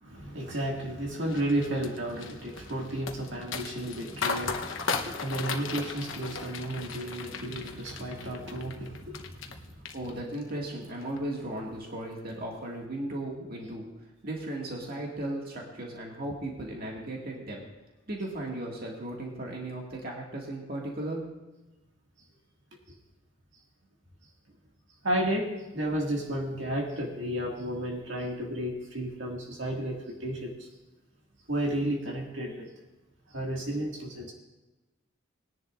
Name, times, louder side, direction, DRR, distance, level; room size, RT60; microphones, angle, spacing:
voice 1, 0.0-9.7 25.0-30.7 31.5-32.7 33.3-34.3, right 1 dB, 65° right, -1 dB, 2.1 m, -32 dB
sound 1, 1.3-9.6 9.9-10.5 10.9-11.2, left 5 dB, 75° left, 1.0 m, -36 dB
voice 2, 9.9-13.9 14.2-17.6 18.1-21.2, right 1 dB, 50° right, -1 dB, 2.0 m, -36 dB
20.5 x 10.5 x 2.5 m, 1.1 s
head